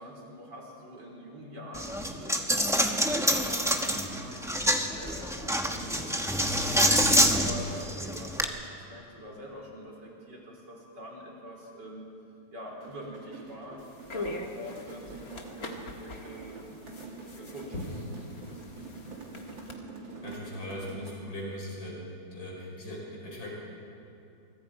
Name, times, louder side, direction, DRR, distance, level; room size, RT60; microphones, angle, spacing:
voice 1, 0.0-2.4 2.8-6.9 7.3-12.0 12.5-13.8 14.1-16.9 17.3-19.1, equal, 65° right, -2 dB, 4.7 m, -45 dB
Coin (dropping), 1.7-8.4, equal, ahead, 0.9 m, -26 dB
sound 1, 12.7-21.3, right 3 dB, 85° right, 3.4 m, -46 dB
sound 2, 13.8-19.7, left 2 dB, 50° left, 2.1 m, -41 dB
voice 2, 20.2-22.0 22.3-23.5, left 1 dB, 80° left, -3 dB, 5.6 m, -39 dB
25.0 x 24.0 x 4.9 m, 2.6 s
omnidirectional pair, 2.0 m